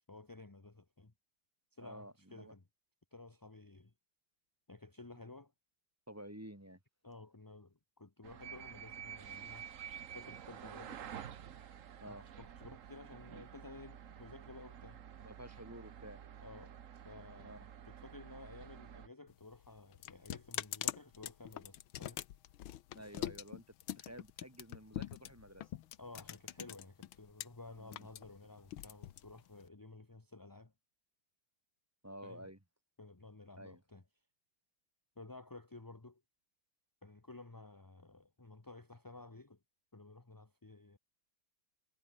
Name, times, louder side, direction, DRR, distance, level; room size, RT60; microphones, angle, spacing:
voice 1, 0.1-1.1 1.7-2.6 3.1-3.9 4.7-5.5 7.0-9.7 10.1-11.0 12.1-15.0 16.4-16.7 17.0-22.2 26.0-30.7 32.2-32.5 33.0-34.0 35.2-36.2 37.0-39.6 39.9-41.0, left 2 dB, 15° left, 0.7 m, -54 dB
voice 2, 1.8-2.5 6.1-6.8 12.0-12.2 15.2-16.2 17.4-17.7 22.9-23.6 24.0-25.7 27.8-28.1 32.0-32.6 33.6-33.8, right 1 dB, 5° right, 2.6 m, -51 dB
sound 1, 8.2-19.1, right 9 dB, 50° right, 1.1 m, -50 dB
sound 2, 19.3-27.4 27.8-29.7, left 13 dB, 85° left, 1.7 m, -43 dB
omnidirectional pair, 2.2 m